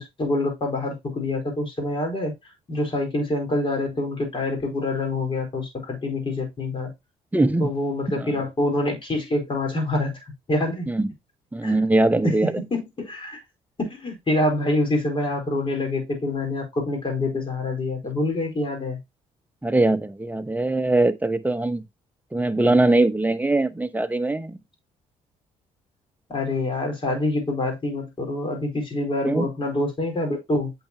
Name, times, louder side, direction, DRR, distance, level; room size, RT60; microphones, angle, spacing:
voice 1, 0.0-2.3 2.7-6.9 7.6-10.2 10.5-10.9 11.6-11.8 12.2-13.4 13.8-19.0 26.3-30.7, left 2 dB, 35° left, 4.6 m, -26 dB
voice 2, 7.3-7.7 8.2-8.3 10.9-11.1 11.5-12.5 19.6-21.8 22.3-24.6 29.2-29.5, right 2 dB, 10° right, 1.0 m, -21 dB
8.6 x 5.9 x 2.9 m
supercardioid pair, 70°, 15 cm